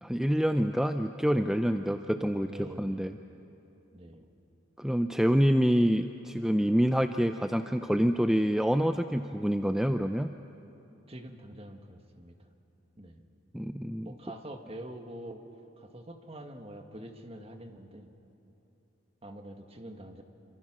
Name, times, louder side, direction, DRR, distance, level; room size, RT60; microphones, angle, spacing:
voice 1, 0.0-3.1 4.8-10.4 13.5-14.1, equal, 5° right, 7 dB, 0.5 m, -27 dB
voice 2, 2.4-3.2 3.9-4.3 11.1-12.5 13.0-13.3 14.0-15.4 15.8-18.1 19.2-20.2, right 1 dB, 30° right, 5 dB, 1.7 m, -45 dB
27.0 x 26.0 x 6.1 m, 2.9 s
head